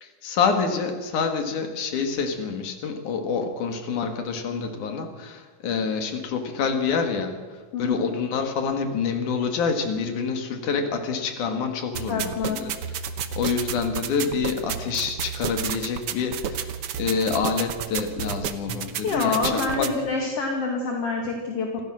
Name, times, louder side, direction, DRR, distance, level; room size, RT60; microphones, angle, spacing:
voice 1, 0.0-12.7 13.4-19.9, left 5 dB, 75° left, 5 dB, 3.4 m, -27 dB
voice 2, 7.7-8.1 12.1-12.6 19.0-21.8, left 4 dB, 50° left, 1 dB, 2.9 m, -26 dB
sound 1, 11.9-19.9, right 8 dB, 65° right, 1.6 m, -31 dB
26.5 x 15.5 x 6.4 m, 1.4 s
omnidirectional pair, 3.6 m